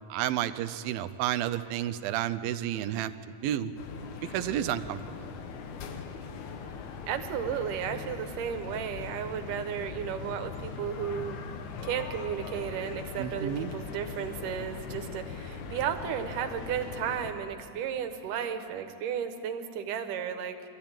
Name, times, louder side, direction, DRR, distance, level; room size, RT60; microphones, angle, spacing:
voice 1, 0.1-3.1 3.4-3.7 4.2-5.0 13.2-13.7, right 12 dB, 90° right, 12 dB, 2.5 m, -31 dB
sound 1, 3.8-17.3, left 5 dB, 65° left, 2.3 m, -40 dB
voice 2, 7.1-11.4 11.8-20.6, right 8 dB, 70° right, 7 dB, 2.5 m, -34 dB
23.5 x 14.0 x 8.9 m, 2.6 s
omnidirectional pair, 4.1 m